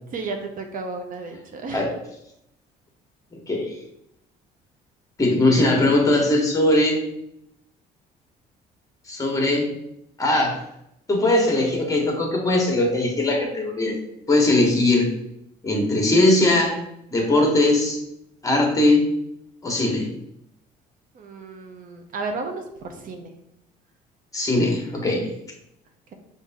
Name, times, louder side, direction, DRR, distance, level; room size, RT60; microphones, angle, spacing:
voice 1, 0.1-2.0 21.1-23.3, right 3 dB, 55° right, 4 dB, 0.7 m, -33 dB
voice 2, 5.2-7.0 9.1-9.7 10.2-10.6 11.1-13.9 14.3-15.1 15.6-16.8 17.1-18.0 18.4-19.1 19.6-20.1 24.3-25.3, left 2 dB, 20° left, 0 dB, 1.2 m, -20 dB
5.4 x 2.7 x 3.5 m, 0.79 s
cardioid pair, 110°, 17 cm